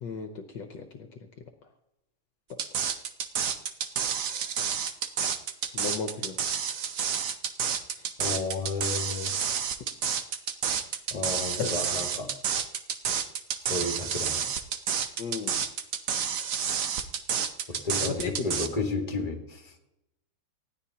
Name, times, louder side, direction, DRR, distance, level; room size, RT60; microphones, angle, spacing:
voice 1, 0.0-1.1 5.2-5.3 5.7-6.4 8.0-8.1 11.6-11.7 15.2-15.6 18.0-18.5, left 5 dB, 65° left, 5 dB, 1.5 m, -34 dB
sound 1, 2.6-18.7, right 7 dB, 60° right, 0.9 m, -29 dB
voice 2, 8.2-9.3 11.1-12.3 13.6-14.4 17.7-19.8, left 3 dB, 20° left, 2 dB, 1.8 m, -32 dB
19.5 x 14.0 x 2.9 m, 0.89 s
omnidirectional pair, 2.3 m